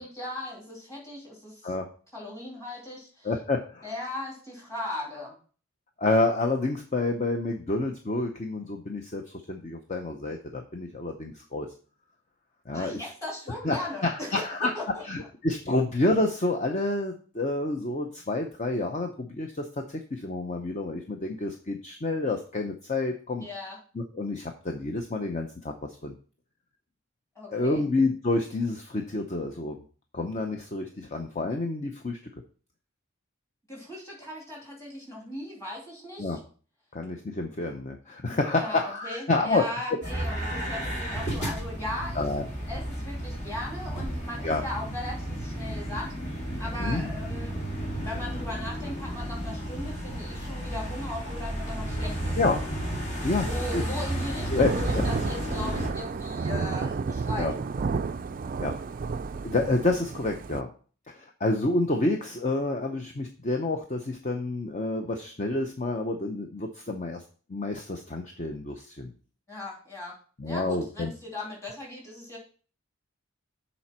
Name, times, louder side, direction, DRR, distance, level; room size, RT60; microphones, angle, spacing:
voice 1, 0.0-1.7 2.1-3.3 3.8-5.4 12.7-14.4 14.7-15.3 23.4-23.8 27.3-27.8 33.7-36.4 38.2-42.2 42.7-46.1 46.4-52.4 53.3-57.5 69.5-70.2 70.4-72.4, left 1 dB, 15° left, -3 dB, 2.9 m, -38 dB
voice 2, 3.2-3.8 6.0-9.2 9.5-11.7 12.7-13.0 13.6-14.7 15.1-23.4 24.0-25.7 26.0-26.1 27.5-29.8 30.1-32.2 36.2-36.4 36.9-39.8 42.1-42.4 44.4-44.6 46.8-47.1 52.4-52.6 53.2-53.5 53.7-53.8 54.5-55.0 57.4-57.5 58.6-58.7 59.4-60.7 61.1-67.2 67.5-69.1 70.4-71.1, left 2 dB, 35° left, 4 dB, 0.6 m, -28 dB
sound 1, 40.0-55.9, right 1 dB, 50° left, 2.3 m, -32 dB
Thunder / Rain, 54.6-60.6, right 4 dB, 40° right, 0.3 m, -31 dB
7.0 x 4.2 x 5.9 m, 0.40 s
head